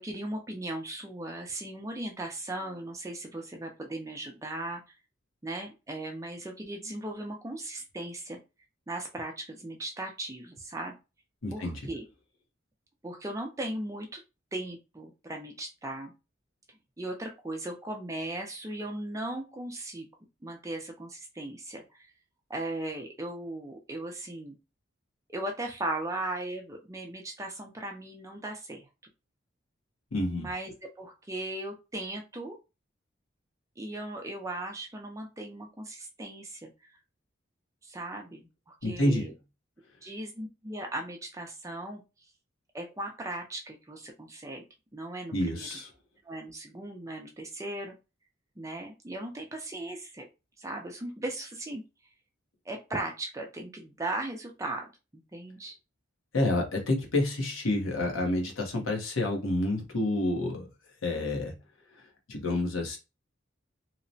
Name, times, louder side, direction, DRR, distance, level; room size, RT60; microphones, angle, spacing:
voice 1, 0.0-4.8 5.4-8.4 8.9-10.9 11.5-12.1 13.0-14.2 14.5-16.1 17.0-20.1 20.4-21.8 22.5-24.6 25.3-28.9 30.3-32.6 33.8-36.7 37.8-39.3 40.0-42.0 42.7-44.6 44.9-45.7 46.2-47.9 48.6-50.2 50.6-51.8 52.7-54.9 55.3-55.7, right 1 dB, 15° right, 0.4 m, -37 dB
voice 2, 11.4-11.8 30.1-30.5 38.8-39.3 45.3-45.9 56.3-60.7 61.0-61.5 62.0-63.0, left 1 dB, 90° left, 0.8 m, -29 dB
2.8 x 2.1 x 2.6 m
head